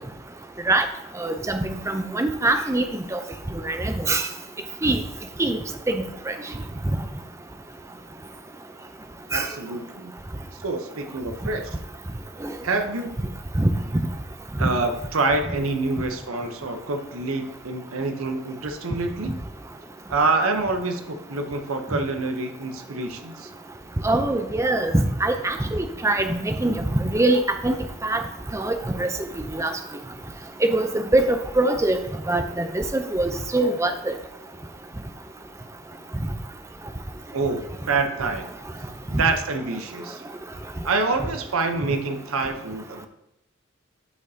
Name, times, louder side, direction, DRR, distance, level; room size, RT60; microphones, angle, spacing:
voice 1, 1.2-2.8 3.1-3.2 3.6-4.3 4.8-5.0 5.4-5.6 5.9-6.3 9.3-9.5 14.6-14.7 24.0-27.8 28.0-28.2 28.5-29.1 29.5-29.7 30.6-32.0 32.3-34.1, right 2 dB, 15° right, 7 dB, 0.6 m, -23 dB
voice 2, 9.3-10.1 10.6-11.7 12.6-13.2 14.6-19.4 20.1-23.5 37.3-38.5 39.1-40.2 40.8-43.1, right 3 dB, 85° right, 6 dB, 0.8 m, -26 dB
12.0 x 5.4 x 2.8 m, 0.84 s
head